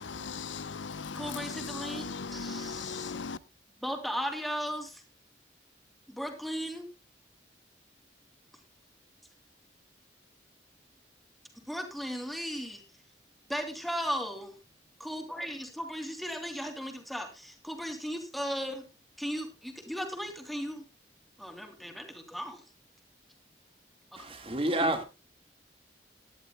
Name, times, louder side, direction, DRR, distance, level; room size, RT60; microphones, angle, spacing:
voice 1, 0.0-3.4, left 5 dB, 85° left, 0.8 m, -38 dB
voice 2, 1.1-2.0 2.3-3.1 3.8-5.0 6.1-6.9 11.7-12.8 13.5-14.5 15.0-18.8 19.2-20.8 21.4-22.6 24.8-25.0, equal, ahead, 3.0 m, -36 dB
voice 3, 24.2-25.0, right 1 dB, 30° right, 1.8 m, -29 dB
20.0 x 11.5 x 2.2 m
head